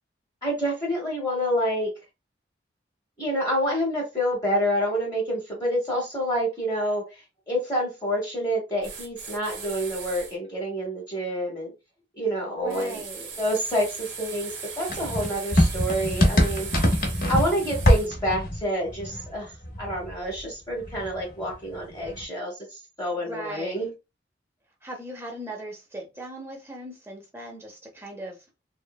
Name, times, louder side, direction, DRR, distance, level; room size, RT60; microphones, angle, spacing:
voice 1, 0.4-1.9 3.2-7.1 7.5-11.7 12.2-13.0 13.4-16.7 17.3-19.5 19.8-23.9, equal, 20° left, 0.8 m, -28 dB
sound 1, 8.8-10.3 12.7-18.1, right 6 dB, 85° right, 0.7 m, -39 dB
voice 2, 12.6-13.3 23.1-23.9 24.8-28.4, right 1 dB, 15° right, 0.6 m, -38 dB
sound 2, 14.9-20.4 20.7-22.2, equal, 50° left, 0.7 m, -24 dB
3.0 x 2.1 x 2.2 m
head